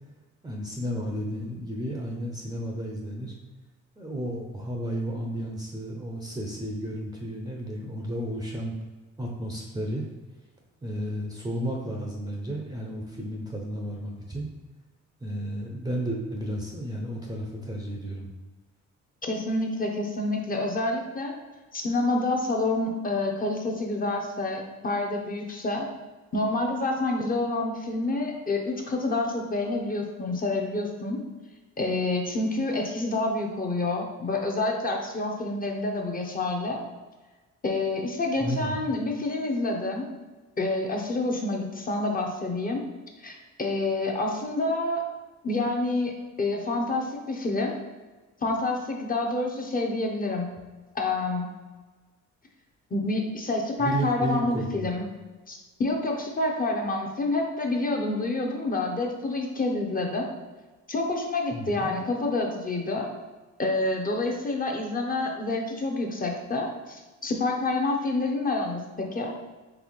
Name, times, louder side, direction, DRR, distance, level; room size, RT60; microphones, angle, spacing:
voice 1, 0.4-3.3 4.0-8.7 9.2-10.0 10.8-14.5 15.2-18.3 38.4-38.7 53.8-54.9 61.5-61.9, equal, 15° right, 0 dB, 0.6 m, -32 dB
voice 2, 19.2-21.4 21.7-25.9 26.3-31.2 31.8-36.8 37.6-40.1 40.6-42.9 43.2-45.1 45.4-47.8 48.4-50.5 50.9-51.5 52.9-55.1 55.5-60.3 60.9-63.1 63.6-69.3, left 2 dB, 30° left, 1 dB, 0.8 m, -28 dB
4.0 x 3.2 x 3.1 m, 1.3 s
cardioid pair, 90°, 30 cm